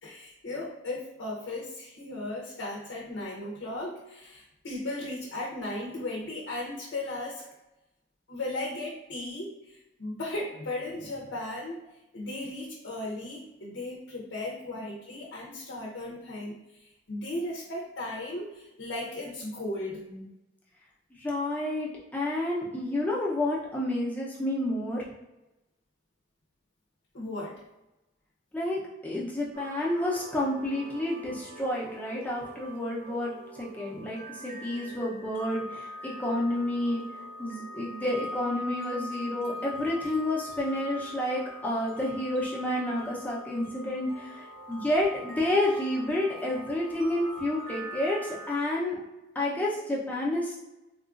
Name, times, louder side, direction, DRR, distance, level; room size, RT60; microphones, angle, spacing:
voice 1, 0.0-7.4 8.3-11.8 12.1-20.0 27.1-27.6, left 2 dB, 80° left, -4 dB, 0.6 m, -36 dB
voice 2, 21.2-25.0 28.5-37.0 37.4-49.0 49.3-50.6, left 1 dB, 10° left, -5 dB, 0.6 m, -30 dB
sound 1, 29.5-48.6, equal, 50° right, 0.6 m, -42 dB
3.7 x 2.3 x 2.5 m, 0.97 s
head